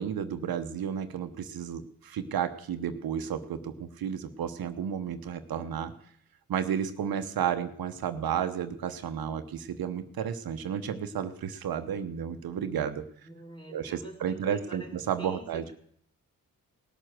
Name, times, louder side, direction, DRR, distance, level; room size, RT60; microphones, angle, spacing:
voice 1, 0.0-5.9 6.5-13.1 13.7-15.6, right 8 dB, 75° right, 8 dB, 1.1 m, -32 dB
voice 2, 13.2-15.7, right 1 dB, 15° left, 2 dB, 4.6 m, -46 dB
18.5 x 6.6 x 7.7 m, 0.65 s
supercardioid pair, 55°, 37 cm